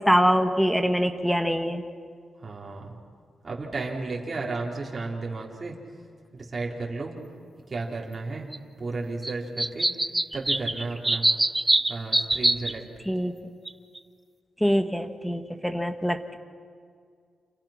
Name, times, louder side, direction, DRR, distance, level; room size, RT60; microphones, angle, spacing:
voice 1, 0.0-1.8 13.1-13.3 14.6-16.4, equal, 5° left, 7 dB, 1.9 m, -24 dB
voice 2, 2.4-2.9 3.4-5.7 6.3-7.1 7.7-8.5 8.8-9.9 10.3-11.3 11.9-12.8, right 3 dB, 35° right, -3 dB, 4.2 m, -33 dB
sound 1, 8.5-8.6 9.2-9.3 9.6-12.7 13.7-13.8 13.9-14.0, right 1 dB, 15° right, 0.9 m, -23 dB
29.0 x 28.5 x 6.1 m, 2.1 s
cardioid pair, 85°, 0 cm